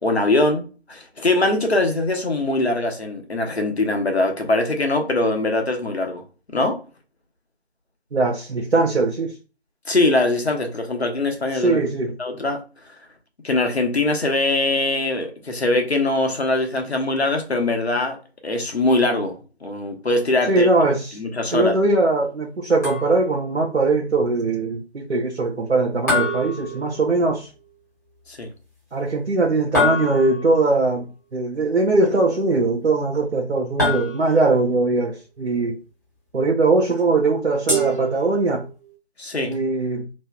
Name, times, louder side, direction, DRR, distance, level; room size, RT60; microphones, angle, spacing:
voice 1, 0.0-6.2 6.5-6.8 9.9-11.8 12.2-12.6 13.4-18.2 18.4-19.3 19.6-20.7 21.1-21.8 28.3-28.5 39.2-39.6, left 2 dB, 75° left, 1.1 m, -22 dB
voice 2, 8.1-9.3 11.5-12.1 20.5-21.2 21.5-27.5 28.9-35.8 36.3-38.7 39.4-40.1, right 3 dB, 90° right, 0.8 m, -21 dB
sound 1, 22.8-23.4 26.1-27.3 29.7-30.6 33.8-34.6 37.7-38.7, left 1 dB, 15° left, 1.0 m, -25 dB
3.1 x 2.8 x 2.3 m
figure-of-eight pair, 160°, 32 cm